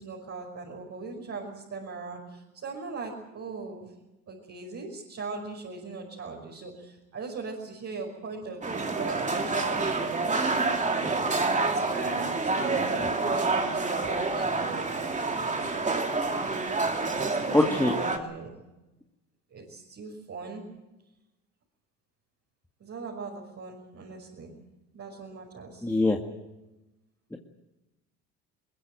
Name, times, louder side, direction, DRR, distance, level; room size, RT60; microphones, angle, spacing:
voice 1, 0.0-3.9 4.3-10.6 11.3-15.8 17.1-18.6 19.5-20.6 22.8-24.5 24.9-25.9, right 4 dB, 45° right, -1 dB, 5.6 m, -40 dB
sound 1, 8.6-18.2, right 3 dB, 20° right, 2.6 m, -28 dB
voice 2, 17.5-17.9 25.8-26.2 27.3-27.4, left 2 dB, 5° left, 1 dB, 2.0 m, -22 dB
22.0 x 21.0 x 7.9 m, 1.0 s
supercardioid pair, 100°, 35 cm